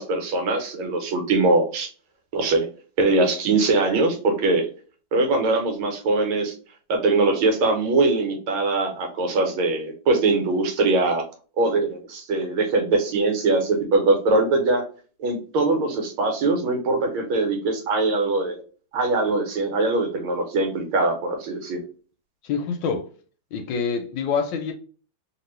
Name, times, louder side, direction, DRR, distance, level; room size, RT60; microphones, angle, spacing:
voice 1, 0.0-1.9 2.3-2.7 3.0-4.7 5.1-6.5 6.9-11.2 11.6-14.8 15.2-18.6 18.9-21.8, right 3 dB, 85° right, 1.7 m, -22 dB
voice 2, 22.4-23.1 23.5-24.7, left 5 dB, 75° left, 1.1 m, -26 dB
3.0 x 2.9 x 3.1 m
omnidirectional pair, 2.3 m